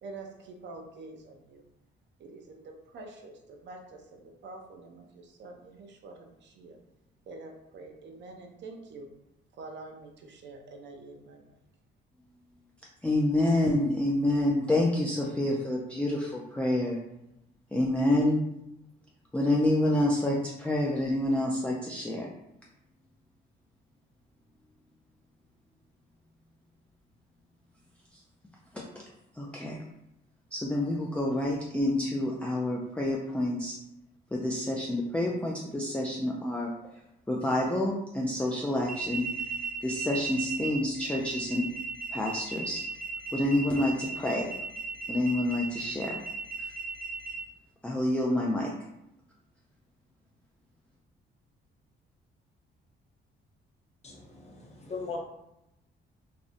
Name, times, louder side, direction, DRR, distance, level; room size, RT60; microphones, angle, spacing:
voice 1, 0.0-1.7 2.2-6.8 7.3-9.1 9.5-11.6, right 3 dB, 65° right, 3 dB, 0.5 m, -46 dB
voice 2, 13.0-17.0 17.7-18.5 19.3-22.3 28.7-29.0 29.3-29.8 30.5-33.7 34.3-36.7 37.3-39.3 39.8-41.6 42.1-42.8 43.3-44.5 45.1-46.2 46.6-46.7 47.8-48.7, left 1 dB, 5° left, -3 dB, 0.3 m, -28 dB
sound 1, 38.8-47.3, right 4 dB, 45° right, 0.9 m, -37 dB
voice 3, 54.0-55.2, left 4 dB, 35° left, -1 dB, 0.7 m, -39 dB
2.6 x 2.0 x 2.5 m, 0.84 s
cardioid pair, 90°, 20 cm